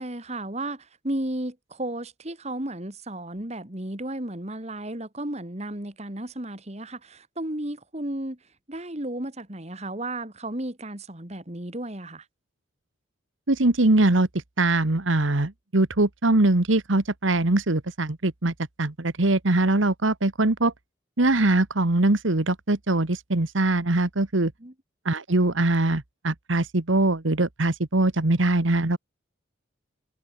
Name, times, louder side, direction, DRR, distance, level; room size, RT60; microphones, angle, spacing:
voice 1, 0.0-8.4 8.7-12.2 24.6-24.7, right 1 dB, 35° right, 2.5 m, -33 dB
voice 2, 13.5-14.3 14.6-20.7 21.2-24.5 25.0-29.0, right 2 dB, 80° right, 1.6 m, -22 dB
head